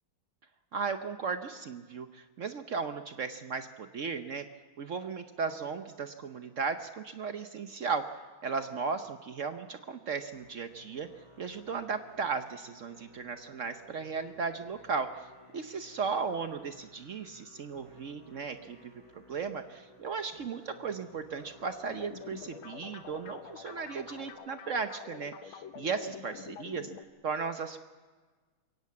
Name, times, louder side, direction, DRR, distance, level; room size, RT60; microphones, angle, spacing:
voice 1, 0.7-4.5 4.8-8.1 8.4-11.1 11.4-15.3 15.5-26.9 27.2-27.8, right 5 dB, 60° right, 9 dB, 0.8 m, -36 dB
Musical instrument, 10.3-24.3, left 1 dB, 55° left, 5.8 m, -57 dB
sound 1, 21.9-27.0, left 8 dB, 90° left, 1.9 m, -47 dB
22.5 x 16.5 x 8.5 m, 1.4 s
omnidirectional pair, 2.2 m